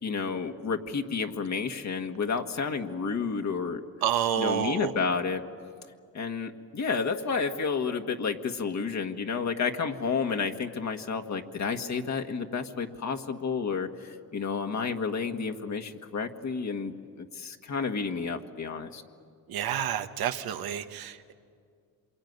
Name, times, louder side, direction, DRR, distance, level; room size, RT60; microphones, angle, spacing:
voice 1, 0.0-3.8 4.4-5.4 6.1-19.0, left 5 dB, 50° left, 4 dB, 1.7 m, -31 dB
voice 2, 4.0-4.9 19.5-21.3, right 10 dB, 80° right, 8 dB, 1.4 m, -29 dB
26.5 x 23.0 x 9.6 m, 2.2 s
cardioid pair, 75°, 36 cm